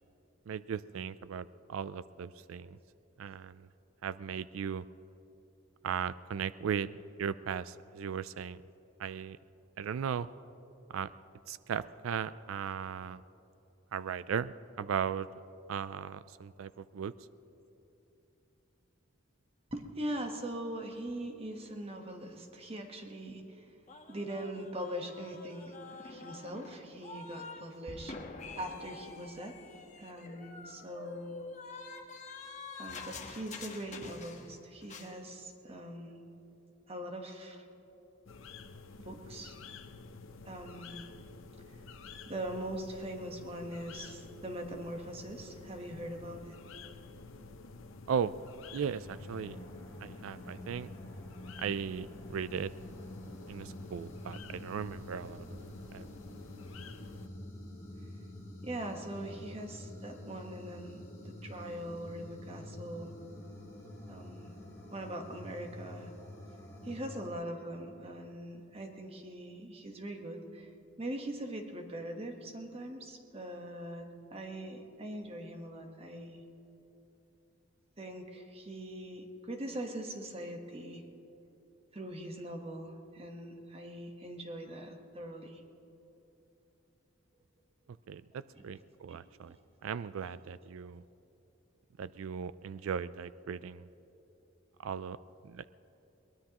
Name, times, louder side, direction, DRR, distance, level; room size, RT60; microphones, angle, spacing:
voice 1, 0.5-2.8 3.2-3.7 4.0-4.9 5.8-8.6 9.0-9.4 9.8-10.3 10.9-11.1 11.5-13.2 13.9-15.3 15.7-17.1 48.1-48.3 48.7-49.6 50.0-50.9 51.6-52.7 53.5-55.6 55.9-56.0 88.1-89.6 89.8-91.0 92.0-93.9 94.8-95.2 95.4-95.7, right 7 dB, 85° right, 16 dB, 0.4 m, -37 dB
voice 2, 19.7-23.7 24.1-28.2 28.6-29.6 30.0-31.4 32.7-36.2 36.9-37.7 39.0-39.6 40.4-41.0 41.7-41.8 42.3-46.6 58.6-63.1 64.1-64.5 64.9-66.1 66.8-70.7 71.0-76.4 78.0-81.0 81.9-85.6 88.5-88.7 89.1-89.2 89.4-89.5 90.2-90.3, right 1 dB, 30° right, 3 dB, 1.2 m, -42 dB
sound 1, 23.9-27.6 27.9-34.6 34.8-35.1, left 4 dB, 35° left, 1.2 m, -47 dB
sound 2, 38.3-57.3, left 4 dB, 75° left, 0.7 m, -50 dB
sound 3, 48.9-67.3, left 1 dB, 15° left, 2.6 m, -48 dB
22.5 x 19.5 x 3.0 m, 3.0 s
head